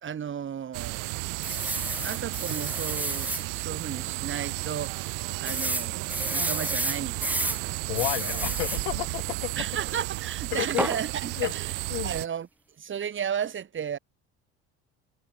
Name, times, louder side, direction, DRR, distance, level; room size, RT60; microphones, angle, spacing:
voice 1, 0.0-1.2 2.0-5.1 5.4-8.4 9.6-11.7 12.0-12.5 12.8-14.0, right 8 dB, 35° right, 1.9 m, -34 dB
sound 1, 0.7-12.3, right 33 dB, 75° right, 1.6 m, -33 dB
sound 2, 1.4-3.4 4.0-4.1 4.4-4.5 5.5-7.6 7.9-8.8 10.8-11.0, right 1 dB, 5° right, 0.8 m, -31 dB
voice 2, 7.8-9.5 10.5-10.9 11.4-11.5 11.9-12.1, left 29 dB, 80° left, 0.5 m, -31 dB
supercardioid pair, 85°, 33 cm